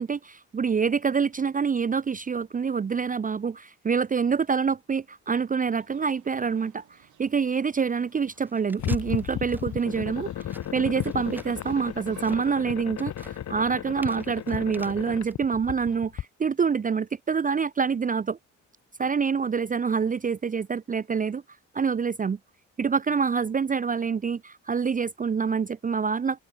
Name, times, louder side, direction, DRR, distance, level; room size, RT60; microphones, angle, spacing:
voice 1, 0.0-18.4 19.0-21.4 21.7-22.4 22.8-26.4, right 6 dB, 25° right, 0.6 m, -26 dB
sound 1, 5.7-12.6, right 14 dB, 85° right, 7.4 m, -59 dB
sound 2, 8.3-15.3, right 1 dB, 5° right, 2.0 m, -49 dB
sound 3, 8.8-16.2, left 11 dB, 65° left, 2.7 m, -34 dB
open air
cardioid pair, 90°, 30 cm